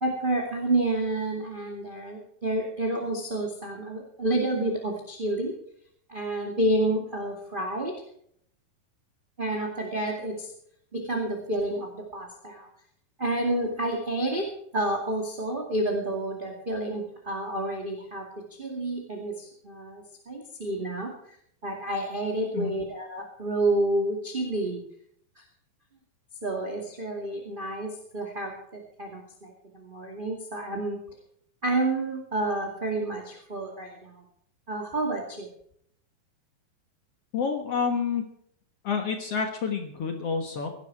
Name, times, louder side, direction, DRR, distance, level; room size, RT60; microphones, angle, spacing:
voice 1, 0.0-5.5 6.1-7.9 9.4-10.5 10.9-12.7 13.2-14.5 14.7-18.2 18.6-21.1 21.6-24.8 25.4-25.5 26.4-31.0 31.6-34.2 34.7-35.5, right 1 dB, 20° right, 0 dB, 1.7 m, -29 dB
voice 2, 37.3-38.2 38.8-40.7, left 5 dB, 55° left, 4 dB, 1.9 m, -28 dB
17.0 x 12.0 x 4.7 m, 0.68 s
omnidirectional pair, 4.4 m